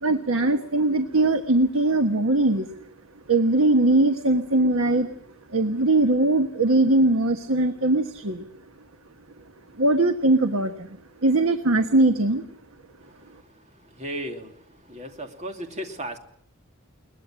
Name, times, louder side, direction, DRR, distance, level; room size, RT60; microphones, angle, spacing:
voice 1, 0.0-2.7 3.3-5.1 5.5-8.5 9.8-12.5, right 2 dB, 75° right, 7 dB, 1.3 m, -21 dB
voice 2, 13.9-14.6 14.9-16.2, right 1 dB, 35° right, 4 dB, 2.7 m, -34 dB
22.0 x 20.0 x 7.5 m, 0.63 s
head